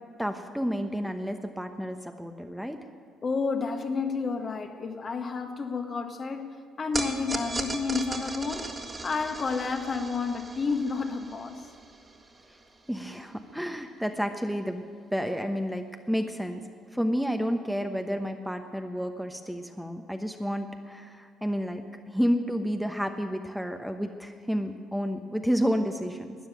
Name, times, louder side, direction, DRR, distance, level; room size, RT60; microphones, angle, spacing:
voice 1, 0.2-2.9 12.9-14.8 15.1-16.6 16.9-26.3, equal, ahead, 5 dB, 1.0 m, -30 dB
voice 2, 3.2-6.5 6.8-8.6 9.0-11.6, left 4 dB, 40° left, 5 dB, 1.6 m, -30 dB
sound 1, 6.9-13.3, right 3 dB, 30° right, 1.9 m, -38 dB
13.5 x 9.5 x 9.2 m, 2.1 s
hypercardioid pair, 65°, 0 cm